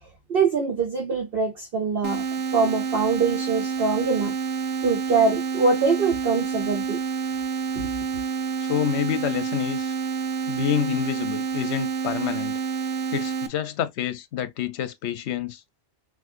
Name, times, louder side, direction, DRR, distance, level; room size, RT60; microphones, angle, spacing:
voice 1, 0.3-2.2 2.5-4.3 4.8-7.0, right 4 dB, 55° right, 1.1 m, -23 dB
sound 1, 2.0-13.5, right 6 dB, 80° right, 1.0 m, -28 dB
voice 2, 8.6-9.9 10.5-12.6 13.1-15.6, left 10 dB, 75° left, 0.9 m, -28 dB
6.1 x 2.6 x 2.5 m
omnidirectional pair, 1.2 m